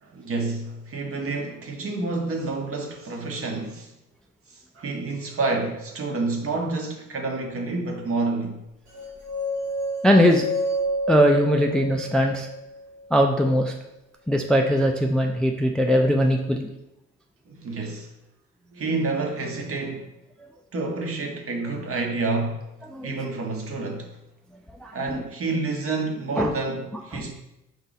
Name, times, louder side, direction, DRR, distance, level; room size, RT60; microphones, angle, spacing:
voice 1, 0.0-3.9 4.5-8.6 17.5-18.1 18.7-20.1 20.7-22.6 23.0-24.1 24.9-27.3, right 3 dB, 50° right, 1.0 m, -29 dB
sound 1, 8.9-13.0, equal, 80° right, 1.5 m, -29 dB
voice 2, 10.0-10.5 11.1-12.5 13.1-13.7 14.3-16.7 22.9-23.2 24.8-25.2 26.4-26.5 27.1-27.2, equal, 5° left, 0.3 m, -20 dB
4.8 x 2.7 x 4.0 m
cardioid pair, 90°, 30 cm